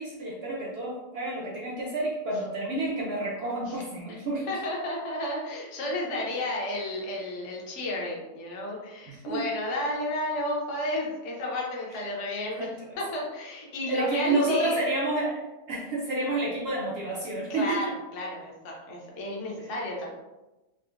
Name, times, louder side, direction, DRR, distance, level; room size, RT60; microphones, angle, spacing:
voice 1, 0.0-4.5 6.3-6.4 9.1-9.5 11.9-12.0 12.6-12.9 13.8-17.8, right 2 dB, 70° right, -3 dB, 0.6 m, -30 dB
voice 2, 4.5-12.7 13.0-14.8 17.5-20.1, left 1 dB, 65° left, -2 dB, 1.0 m, -32 dB
3.7 x 2.0 x 2.4 m, 1.1 s
omnidirectional pair, 1.5 m